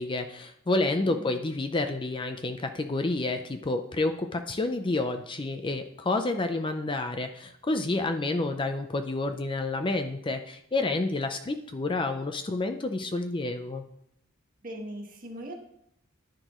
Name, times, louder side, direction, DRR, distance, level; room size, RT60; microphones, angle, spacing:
voice 1, 0.0-13.8, left 2 dB, 25° left, 7 dB, 0.5 m, -29 dB
voice 2, 1.1-1.4 14.6-15.5, right 1 dB, 40° right, 0 dB, 1.8 m, -40 dB
10.5 x 10.0 x 3.1 m, 0.74 s
head